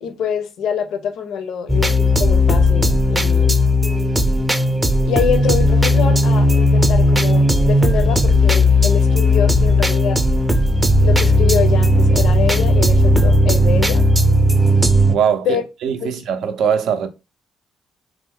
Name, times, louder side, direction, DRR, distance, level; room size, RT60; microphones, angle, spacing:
voice 1, 0.0-3.6 5.1-10.2 11.0-14.0 15.4-15.6 16.0-16.1, left 7 dB, 75° left, 0.5 m, -25 dB
sound 1, 1.7-15.1, left 1 dB, 15° right, 0.5 m, -15 dB
voice 2, 15.1-17.1, right 8 dB, 70° right, 0.4 m, -21 dB
3.0 x 2.1 x 3.4 m
hypercardioid pair, 50°, 0 cm